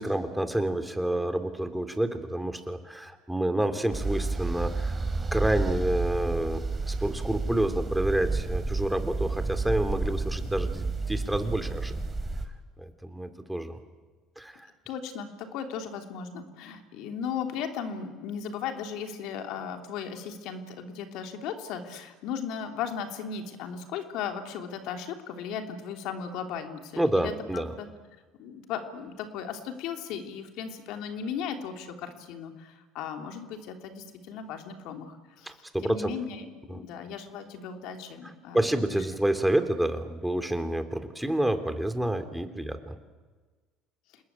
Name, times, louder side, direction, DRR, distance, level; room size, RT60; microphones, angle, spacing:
voice 1, 0.0-5.0 5.3-12.0 12.8-13.8 14.4-14.7 27.0-27.7 35.4-36.1 36.7-36.8 38.5-43.0, right 1 dB, 5° right, 8 dB, 3.4 m, -29 dB
sound 1, 3.9-12.4, right 3 dB, 25° right, 4.2 m, -31 dB
voice 2, 14.9-27.9 28.4-35.6 35.8-39.0, left 7 dB, 70° left, 5 dB, 3.3 m, -36 dB
29.0 x 20.0 x 8.9 m, 1.4 s
hypercardioid pair, 70°, 0 cm